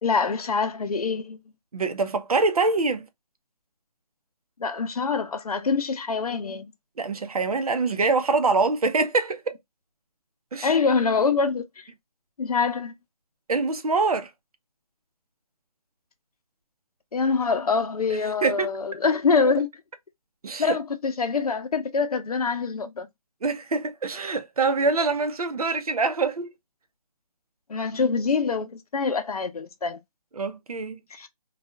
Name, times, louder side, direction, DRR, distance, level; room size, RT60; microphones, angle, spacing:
voice 1, 0.0-1.4 4.6-6.7 10.6-11.9 12.4-12.9 17.1-19.7 20.6-23.1 27.7-30.0 31.1-31.3, left 5 dB, 65° left, 0.7 m, -25 dB
voice 2, 1.7-3.1 7.0-9.4 10.5-10.8 13.5-14.3 18.4-18.7 20.4-20.8 23.4-26.5 30.4-31.0, right 3 dB, 65° right, 0.7 m, -24 dB
2.7 x 2.4 x 2.2 m
hypercardioid pair, 175°, 20 cm